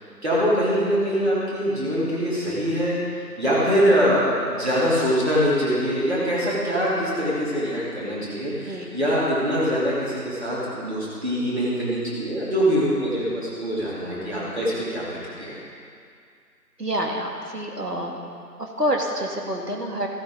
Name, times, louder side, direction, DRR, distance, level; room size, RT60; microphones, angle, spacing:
voice 1, 0.2-3.0 3.4-15.6, equal, 40° right, -8 dB, 3.4 m, -23 dB
voice 2, 16.8-18.2 18.6-20.1, equal, 75° right, 0 dB, 2.3 m, -27 dB
14.5 x 13.0 x 3.9 m, 2.3 s
figure-of-eight pair, 170°, 48 cm